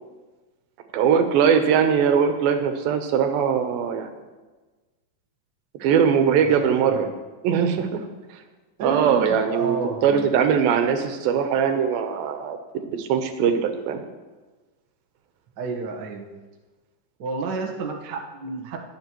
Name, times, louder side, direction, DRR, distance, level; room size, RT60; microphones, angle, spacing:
voice 1, 0.9-4.1 5.8-7.1 7.4-8.0 8.8-9.8 10.0-12.6 13.0-14.0, right 7 dB, 90° right, 7 dB, 2.8 m, -21 dB
voice 2, 6.4-7.1 8.8-10.3 15.6-16.3 17.2-18.8, right 4 dB, 65° right, 0 dB, 1.0 m, -31 dB
21.5 x 7.8 x 3.0 m, 1.3 s
omnidirectional pair, 4.1 m